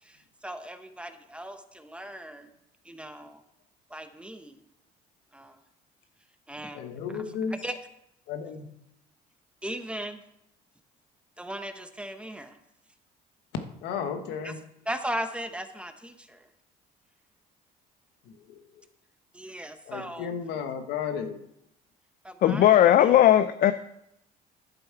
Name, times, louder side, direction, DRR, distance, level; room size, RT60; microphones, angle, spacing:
voice 1, 0.0-2.5 2.8-3.4 3.9-4.6 5.3-5.6 6.5-6.8 7.6-7.8 9.6-10.2 11.4-12.6 14.4-14.5 14.9-16.5 19.3-20.3 22.2-23.1, right 1 dB, 5° right, 8 dB, 0.9 m, -37 dB
voice 2, 6.7-7.6 8.3-8.7 13.8-14.7 18.2-18.6 19.8-21.5, left 6 dB, 90° left, 7 dB, 1.2 m, -34 dB
voice 3, 22.4-23.7, left 11 dB, 55° left, 12 dB, 0.5 m, -18 dB
11.5 x 7.0 x 4.6 m, 0.80 s
cardioid pair, 110°, 17 cm